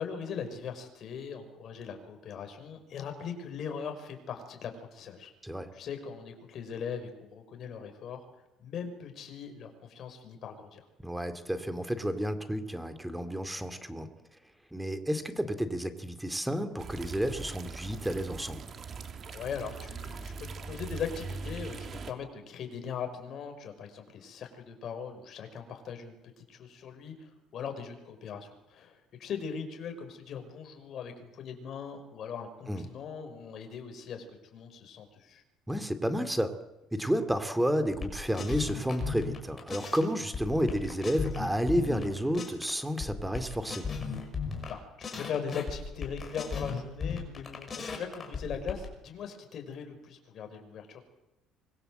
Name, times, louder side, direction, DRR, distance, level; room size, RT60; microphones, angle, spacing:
voice 1, 0.0-5.3 5.7-8.2 8.6-10.8 19.3-34.2 34.5-35.4 44.7-51.0, left 6 dB, 50° left, 5 dB, 5.7 m, -40 dB
voice 2, 11.0-14.1 14.7-18.6 32.7-32.8 35.7-36.6 36.9-43.8, equal, 5° right, 10 dB, 2.4 m, -31 dB
sound 1, 16.8-22.1, right 4 dB, 40° right, 2.6 m, -41 dB
sound 2, 38.0-40.0 40.3-42.7 43.0-44.7 45.0-48.9, left 5 dB, 30° left, 6.0 m, -36 dB
25.5 x 22.5 x 7.9 m, 0.97 s
cardioid pair, 125°, 0 cm